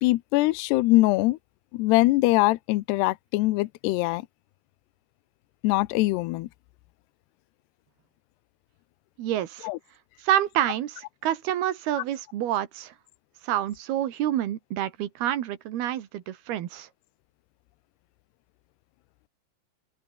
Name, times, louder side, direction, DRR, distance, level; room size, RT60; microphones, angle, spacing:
voice 1, 0.0-1.4 1.7-4.2 5.6-6.5 9.6-9.8, left 20 dB, 80° left, 2.8 m, -22 dB
voice 2, 9.2-9.7 10.2-12.9 13.4-16.9, right 12 dB, 65° right, 3.6 m, -28 dB
open air
omnidirectional pair, 5.0 m